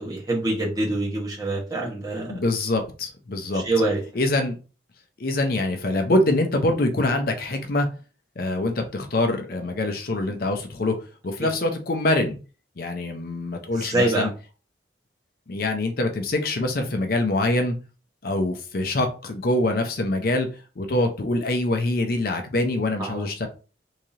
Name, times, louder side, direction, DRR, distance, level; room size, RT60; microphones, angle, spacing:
voice 1, 0.0-2.4 3.5-4.0 11.4-11.5 13.7-14.3 23.0-23.3, right 2 dB, 20° right, -3 dB, 1.2 m, -25 dB
voice 2, 2.3-3.6 4.1-4.6 5.2-7.9 8.4-11.0 11.2-12.4 12.8-14.3 15.5-17.8 18.2-20.5 20.8-23.5, left 2 dB, 50° left, 5 dB, 0.6 m, -24 dB
3.6 x 3.2 x 2.8 m, 0.35 s
head